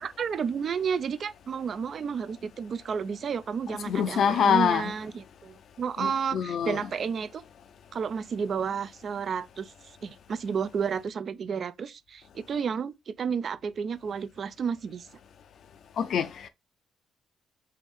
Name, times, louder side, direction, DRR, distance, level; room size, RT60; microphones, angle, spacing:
voice 1, 0.0-7.4 7.9-9.7 10.0-15.1, right 6 dB, 55° right, 0.4 m, -31 dB
voice 2, 3.9-4.9 6.0-6.8 16.0-16.5, left 7 dB, 65° left, 0.5 m, -25 dB
5.5 x 2.6 x 3.3 m
cardioid pair, 90°, 0 cm